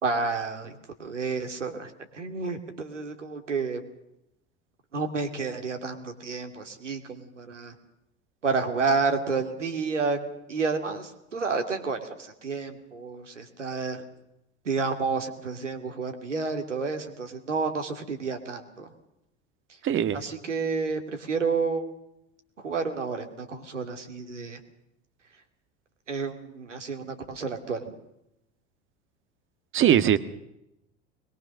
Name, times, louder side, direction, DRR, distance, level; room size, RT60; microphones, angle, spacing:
voice 1, 0.0-3.8 4.9-7.7 8.4-10.2 10.5-14.0 14.6-18.9 20.1-21.9 22.6-24.6 26.1-28.0, right 4 dB, 80° right, 5 dB, 2.8 m, -30 dB
voice 2, 19.8-20.2 29.7-30.2, right 10 dB, 35° right, 13 dB, 1.6 m, -21 dB
23.0 x 21.5 x 6.6 m, 0.83 s
figure-of-eight pair, 70°, 36 cm